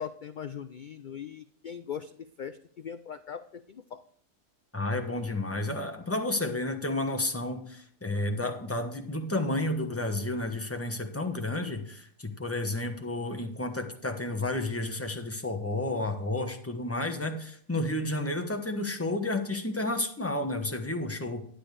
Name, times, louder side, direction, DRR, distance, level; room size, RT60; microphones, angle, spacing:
voice 1, 0.0-4.0, left 8 dB, 80° left, 10 dB, 0.4 m, -40 dB
voice 2, 4.7-21.4, left 2 dB, 10° left, 5 dB, 1.0 m, -31 dB
11.5 x 10.0 x 3.3 m, 0.63 s
omnidirectional pair, 1.4 m